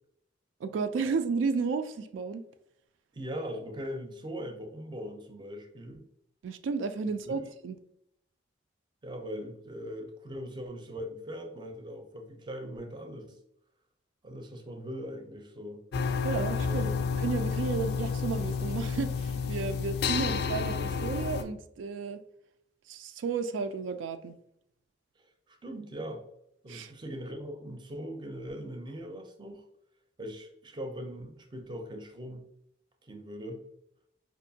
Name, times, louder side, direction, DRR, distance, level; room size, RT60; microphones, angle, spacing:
voice 1, 0.6-2.4 6.4-7.8 16.2-16.9 17.2-22.2 22.9-24.4 26.7-26.9, right 5 dB, 90° right, 10 dB, 0.3 m, -33 dB
voice 2, 3.1-6.1 7.2-7.4 9.0-13.4 14.2-15.8 16.6-17.0 25.5-26.2 26.6-29.6 30.2-32.5 33.1-33.6, equal, 25° right, 5 dB, 0.5 m, -40 dB
sound 1, 15.9-21.4, left 5 dB, 60° left, 0.3 m, -30 dB
4.5 x 2.5 x 2.7 m, 0.75 s
head